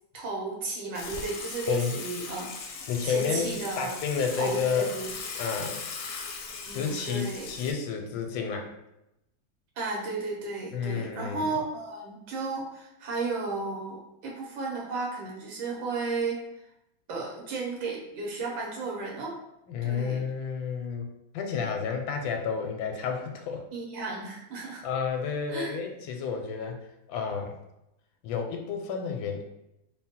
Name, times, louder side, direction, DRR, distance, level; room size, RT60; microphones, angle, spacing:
voice 1, 0.1-2.5 3.0-3.9 4.3-5.1 6.7-7.5 9.8-16.4 17.1-19.4 19.8-20.2 23.7-24.8 25.5-25.8, right 3 dB, 80° right, -2 dB, 1.8 m, -34 dB
Water / Water tap faucet / Sink (filling or washing), 0.9-7.7, left 5 dB, 70° left, 0.9 m, -39 dB
voice 2, 2.9-3.5 3.8-4.9 5.4-5.8 6.7-8.8 10.7-11.5 19.7-23.6 24.8-26.8 27.1-27.6 28.2-29.4, left 6 dB, 90° left, 4 dB, 1.4 m, -30 dB
3.8 x 2.1 x 4.2 m, 0.87 s
omnidirectional pair, 2.1 m